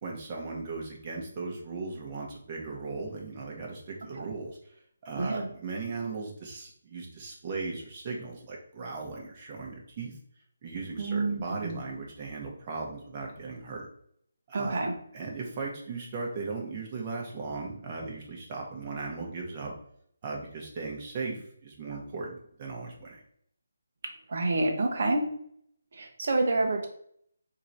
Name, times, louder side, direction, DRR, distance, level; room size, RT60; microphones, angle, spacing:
voice 1, 0.0-4.6 5.0-10.1 10.6-13.9 14.5-14.8 15.1-19.8 20.2-23.2, right 4 dB, 30° right, -1 dB, 1.1 m, -37 dB
voice 2, 5.2-5.5 11.0-11.8 14.5-14.9 24.3-25.2 25.9-26.9, right 2 dB, 55° right, 2 dB, 0.9 m, -28 dB
3.7 x 2.8 x 4.6 m, 0.66 s
figure-of-eight pair, 165°, 0 cm